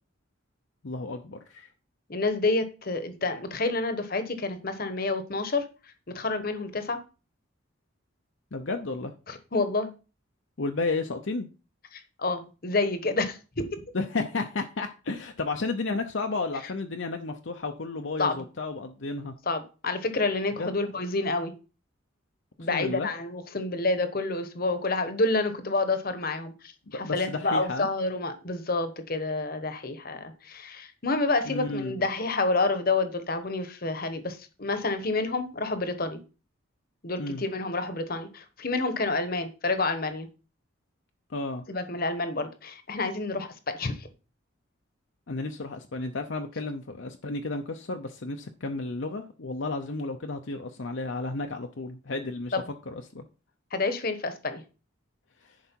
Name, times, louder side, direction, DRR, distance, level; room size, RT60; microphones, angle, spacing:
voice 1, 0.8-1.7 8.5-9.1 10.6-11.5 13.9-19.3 20.6-20.7 22.6-23.1 26.9-27.9 31.4-32.1 37.2-37.4 41.3-41.6 45.3-52.5 52.9-53.2 55.4-55.6, left 3 dB, 65° left, 5 dB, 0.7 m, -32 dB
voice 2, 2.1-5.6 6.1-7.0 9.3-9.9 11.9-13.8 18.2-18.4 19.5-21.5 22.6-26.5 26.9-36.2 37.0-40.3 41.7-44.1 52.5-52.6 53.7-54.6, left 3 dB, 45° left, 9 dB, 1.1 m, -28 dB
10.5 x 4.9 x 4.5 m, 0.34 s
head